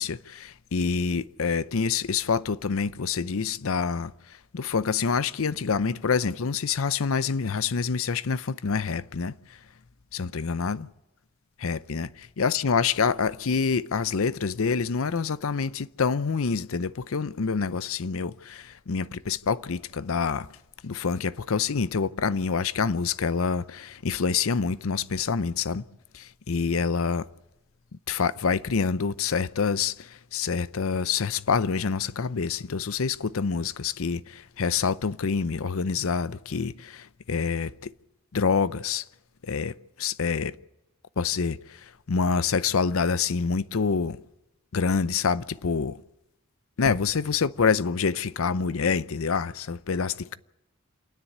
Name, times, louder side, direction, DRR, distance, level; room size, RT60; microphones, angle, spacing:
voice 1, 0.0-9.3 10.1-10.9 11.6-20.5 20.8-25.8 26.1-27.3 28.1-37.9 38.3-39.0 39.4-40.5 41.2-44.2 44.7-46.0 46.8-50.4, left 5 dB, 65° left, 0.6 m, -27 dB
27.5 x 10.0 x 9.5 m
head